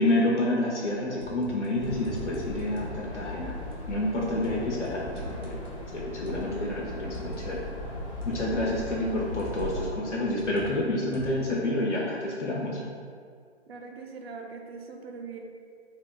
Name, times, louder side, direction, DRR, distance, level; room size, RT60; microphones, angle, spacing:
voice 1, 0.0-3.5 3.9-5.6 5.9-7.6 8.2-12.8, left 1 dB, 90° left, -4 dB, 0.7 m, -28 dB
sound 1, 1.0-3.0 3.7-4.9 5.1-7.4 8.2-8.6 9.4-9.9 10.4-11.5, right 1 dB, 60° left, 1.0 m, -43 dB
sound 2, 1.7-9.9, left 1 dB, 30° left, 0.6 m, -38 dB
voice 2, 13.7-15.4, right 4 dB, 60° right, 3 dB, 0.5 m, -42 dB
2.8 x 2.5 x 3.5 m, 2.1 s
hypercardioid pair, 140°, 35 cm